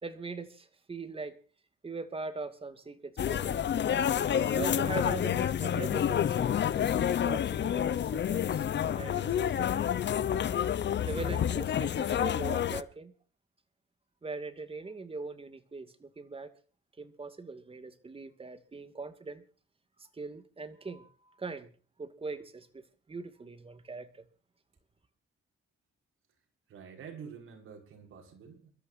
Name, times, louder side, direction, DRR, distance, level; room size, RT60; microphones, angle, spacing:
voice 1, 0.0-1.4 1.8-3.7 4.5-9.7 11.1-13.1 14.2-16.5 17.0-19.4 20.0-21.1 21.4-21.7 22.0-24.2, right 4 dB, 25° right, 9 dB, 2.4 m, -41 dB
sound 1, 3.2-12.8, left 9 dB, 60° left, 0.9 m, -29 dB
voice 2, 26.7-28.7, right 6 dB, 80° right, 2 dB, 6.2 m, -47 dB
29.5 x 13.5 x 2.7 m, 0.40 s
cardioid pair, 115°, 21 cm